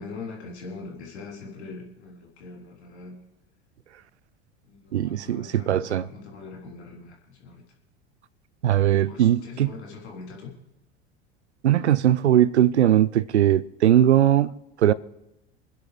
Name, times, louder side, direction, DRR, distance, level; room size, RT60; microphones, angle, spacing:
voice 1, 0.0-3.2 4.6-7.6 9.1-10.5, left 4 dB, 85° left, 3.6 m, -41 dB
voice 2, 4.9-6.1 8.6-9.7 11.6-14.5 14.8-14.9, right 11 dB, 90° right, 0.6 m, -20 dB
26.5 x 10.5 x 3.4 m
hypercardioid pair, 80°, 33 cm